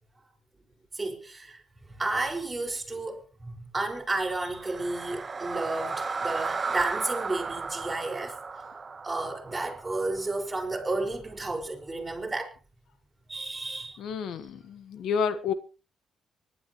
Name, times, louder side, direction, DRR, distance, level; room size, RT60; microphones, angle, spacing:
voice 1, 0.9-8.4 9.0-12.5 13.3-14.0, right 2 dB, 15° right, 5.5 m, -32 dB
sound 1, 4.5-10.6, right 4 dB, 30° right, 1.1 m, -35 dB
voice 2, 14.0-15.5, left 6 dB, 75° left, 1.4 m, -30 dB
24.5 x 12.0 x 3.1 m
cardioid pair, 90°, 0 cm